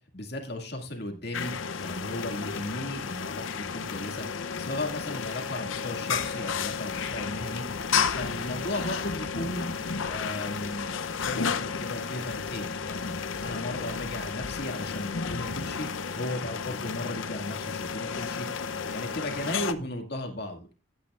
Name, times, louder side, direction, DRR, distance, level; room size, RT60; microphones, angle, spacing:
voice 1, 0.1-1.5 1.8-4.3 4.6-7.6 8.1-9.7 10.1-15.9 16.2-18.5 18.9-20.7, left 1 dB, 55° left, 3 dB, 2.1 m, -36 dB
sound 1, 1.3-19.7, left 6 dB, 80° left, 0.7 m, -32 dB
15.5 x 8.9 x 2.4 m, 0.32 s
head